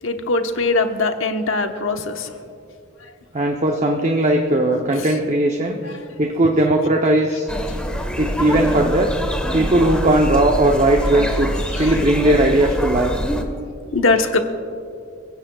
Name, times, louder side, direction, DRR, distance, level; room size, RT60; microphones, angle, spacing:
voice 1, 0.0-2.3 4.7-5.1 5.8-6.1 7.8-7.9 11.7-11.9 13.9-14.4, left 3 dB, 75° left, 5 dB, 1.2 m, -22 dB
voice 2, 3.3-7.5 8.2-9.1 9.5-13.1, right 1 dB, 35° right, 2 dB, 0.9 m, -18 dB
sound 1, 7.5-13.4, equal, 5° left, 1.3 m, -24 dB
29.5 x 16.0 x 2.4 m, 2.4 s
head